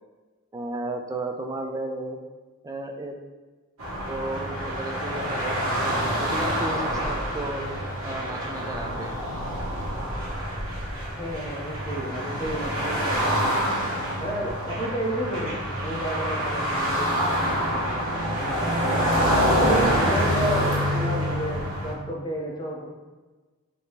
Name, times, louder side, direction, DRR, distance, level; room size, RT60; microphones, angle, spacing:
voice 1, 0.5-2.2 2.6-3.2 4.1-7.6 8.0-9.1, right 2 dB, 15° right, 4 dB, 0.3 m, -34 dB
sound 1, 3.8-21.9, equal, 70° right, 1.2 m, -26 dB
voice 2, 11.2-13.6 14.2-17.9 18.3-19.1 19.3-22.9, equal, 20° left, -3 dB, 0.7 m, -32 dB
5.0 x 2.8 x 2.9 m, 1.3 s
head